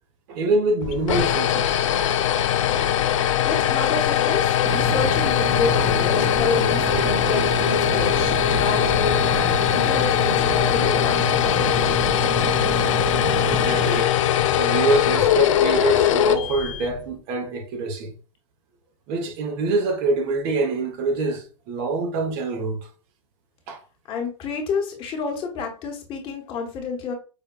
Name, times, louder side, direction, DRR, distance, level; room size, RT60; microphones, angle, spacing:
voice 1, 0.3-1.8 13.5-14.1 14.6-18.1 19.1-22.9 23.7-23.8, right 3 dB, 45° right, 0.7 m, -25 dB
sound 1, 0.8-17.0, left 10 dB, 80° left, 0.4 m, -21 dB
voice 2, 3.4-12.1 24.1-27.1, left 5 dB, 30° left, 1.0 m, -29 dB
sound 2, 4.7-14.0, right 5 dB, 25° right, 0.3 m, -29 dB
5.0 x 2.2 x 2.2 m
hypercardioid pair, 135°, 16 cm